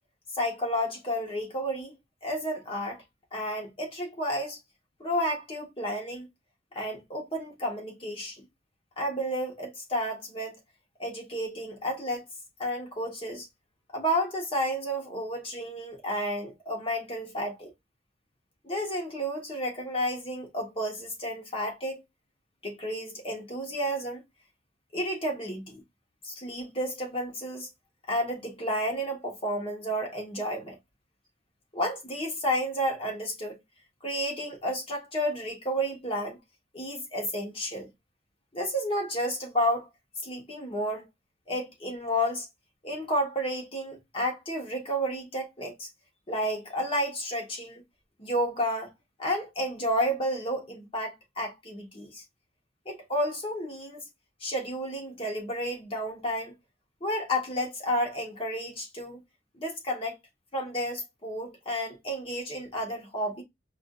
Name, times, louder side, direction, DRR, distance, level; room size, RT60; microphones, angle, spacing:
voice 1, 0.3-3.0 3.3-4.6 5.0-6.3 6.7-8.5 9.0-10.6 11.0-12.2 12.6-13.5 13.9-17.7 18.6-22.0 22.6-24.2 24.9-25.8 26.2-27.7 28.1-30.8 31.7-33.6 34.0-36.4 36.7-37.9 38.5-39.9 40.2-41.1 41.5-42.5 42.8-45.9 46.3-47.8 48.2-48.9 49.2-52.2 52.8-54.0 54.4-56.5 57.0-59.2 59.5-60.1 60.5-63.4, equal, 30° left, 1.3 m, -31 dB
4.7 x 2.5 x 2.3 m
head